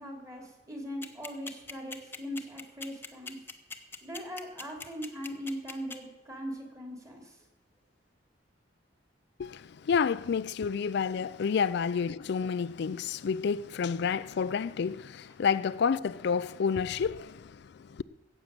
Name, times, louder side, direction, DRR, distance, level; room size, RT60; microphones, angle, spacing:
voice 1, 0.0-3.4 4.0-7.4, equal, 20° right, 3.0 m, -40 dB
sound 1, 1.0-6.0, left 3 dB, 10° left, 1.0 m, -40 dB
voice 2, 9.4-18.0, left 6 dB, 60° left, 0.4 m, -30 dB
14.5 x 8.5 x 7.6 m
head